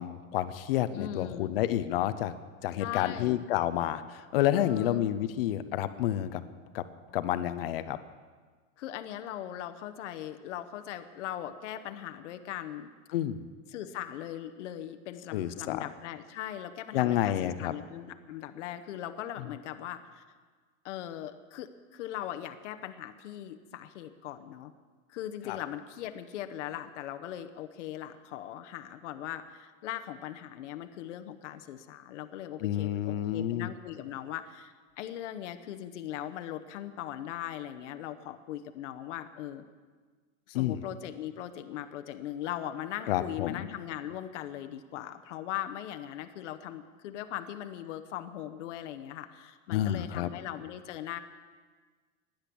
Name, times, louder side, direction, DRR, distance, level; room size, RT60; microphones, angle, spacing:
voice 1, 0.0-2.3 2.6-6.4 6.7-6.8 7.1-8.0 13.1-13.4 15.3-15.8 16.9-17.7 25.5-25.6 32.6-33.7 40.5-40.8 43.1-43.6 49.7-50.3, left 12 dB, 45° left, 12 dB, 0.7 m, -29 dB
voice 2, 0.9-1.5 2.8-3.4 4.5-5.1 8.8-12.9 13.7-20.2 20.8-24.7 25.1-39.6 40.5-51.2, left 11 dB, 60° left, 8 dB, 1.0 m, -40 dB
16.0 x 10.5 x 6.9 m, 1.5 s
supercardioid pair, 180°, 40 cm